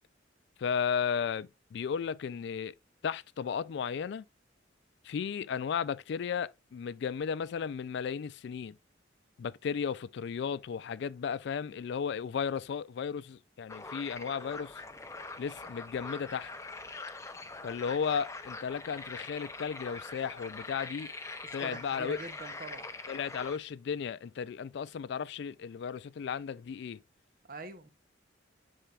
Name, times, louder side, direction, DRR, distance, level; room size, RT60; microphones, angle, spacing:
voice 1, 0.6-2.7 3.0-4.2 5.0-8.8 9.4-14.8 15.4-16.5 17.6-21.1 21.5-22.2 23.1-27.0, left 7 dB, 60° left, 0.3 m, -34 dB
sound 1, 13.7-23.6, left 3 dB, 15° left, 0.6 m, -43 dB
voice 2, 21.4-22.9 27.5-27.9, right 3 dB, 50° right, 0.8 m, -44 dB
10.0 x 4.4 x 2.4 m
head